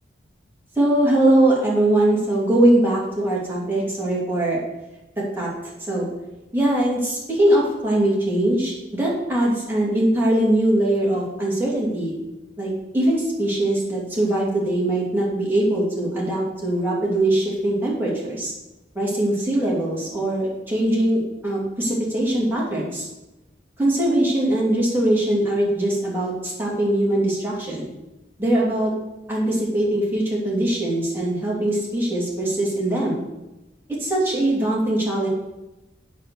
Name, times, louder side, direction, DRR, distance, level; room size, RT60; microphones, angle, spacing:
voice 1, 0.8-4.6 5.4-5.5 5.9-6.0 6.5-12.1 12.6-18.5 18.9-23.1 23.8-27.9 28.4-28.9 29.3-33.2 34.0-35.3, right 1 dB, 10° right, -6 dB, 2.8 m, -21 dB
8.2 x 6.5 x 7.0 m, 1.0 s
head